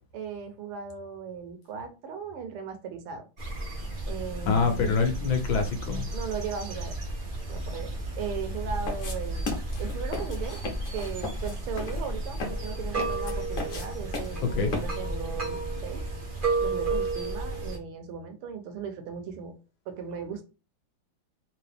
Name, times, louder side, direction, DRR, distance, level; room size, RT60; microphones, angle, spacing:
voice 1, 0.1-3.3 4.1-4.7 6.1-7.0 7.5-7.9 8.2-9.5 9.8-10.6 10.9-16.0 16.6-19.5 19.9-20.4, right 6 dB, 85° right, 6 dB, 1.7 m, -37 dB
sound 1, 3.4-17.8, right 2 dB, 60° right, 0.5 m, -32 dB
voice 2, 4.4-6.1 14.4-14.7, left 5 dB, 70° left, 5 dB, 1.5 m, -25 dB
sound 2, 8.9-15.2, left 3 dB, 50° left, 1.2 m, -38 dB
3.7 x 3.1 x 3.4 m, 0.31 s
omnidirectional pair, 2.4 m